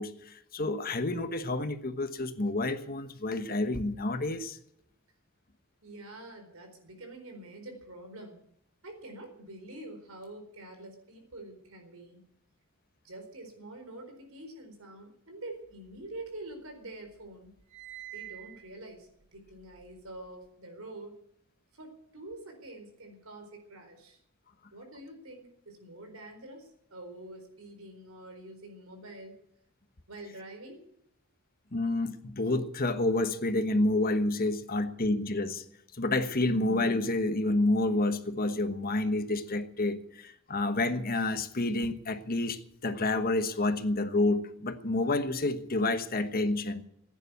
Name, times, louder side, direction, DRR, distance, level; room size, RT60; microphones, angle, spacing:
voice 1, 0.0-4.6 31.7-35.6 35.9-46.9, left 2 dB, 45° left, 9 dB, 1.3 m, -29 dB
voice 2, 5.8-8.4 8.8-12.2 13.0-17.5 18.1-21.2 21.7-24.2 24.7-29.4 30.1-30.9, right 2 dB, 80° right, 5 dB, 4.3 m, -46 dB
sound 1, 15.7-16.7 17.1-20.5, right 14 dB, 55° right, 2.7 m, -49 dB
15.5 x 9.9 x 8.1 m, 0.72 s
head